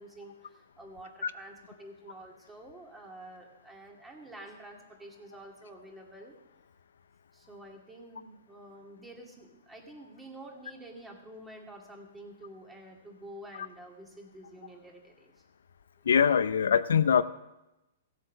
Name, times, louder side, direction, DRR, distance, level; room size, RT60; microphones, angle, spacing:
voice 1, 0.0-6.4 7.3-15.4, right 1 dB, 10° right, 1 dB, 2.2 m, -49 dB
voice 2, 16.1-17.2, left 7 dB, 85° left, 13 dB, 0.6 m, -23 dB
16.0 x 8.1 x 6.5 m, 0.96 s
hypercardioid pair, 140°, 0 cm